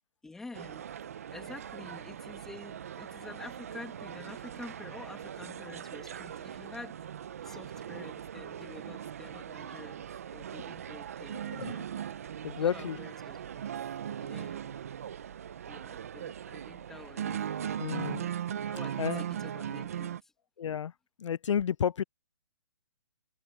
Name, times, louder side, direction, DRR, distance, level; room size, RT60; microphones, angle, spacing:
voice 1, 0.2-0.9 1.3-7.1 7.4-10.1 10.3-12.2 12.5-13.6 14.2-14.8 15.7-17.8 18.7-20.3, left 3 dB, 5° left, 2.1 m, -48 dB
sound 1, 0.5-20.2, right 9 dB, 30° right, 0.6 m, -39 dB
voice 2, 12.4-13.0 17.8-18.3 19.0-19.2 20.6-20.9 21.2-22.0, left 8 dB, 75° left, 0.4 m, -31 dB
hypercardioid pair, 175°, 16 cm